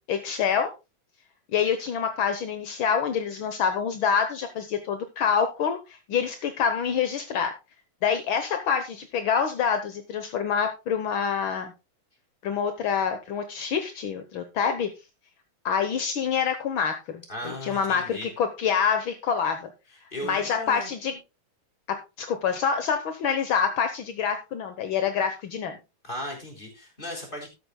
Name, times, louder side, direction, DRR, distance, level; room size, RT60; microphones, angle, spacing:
voice 1, 0.1-0.7 1.5-7.5 8.0-11.7 12.4-14.9 15.6-19.7 20.2-21.2 21.9-25.7, left 7 dB, 65° left, 7 dB, 1.2 m, -26 dB
voice 2, 17.3-18.3 20.1-20.9 26.0-27.5, left 1 dB, 15° left, 1 dB, 3.7 m, -36 dB
13.0 x 12.0 x 2.2 m, 0.27 s
omnidirectional pair, 3.5 m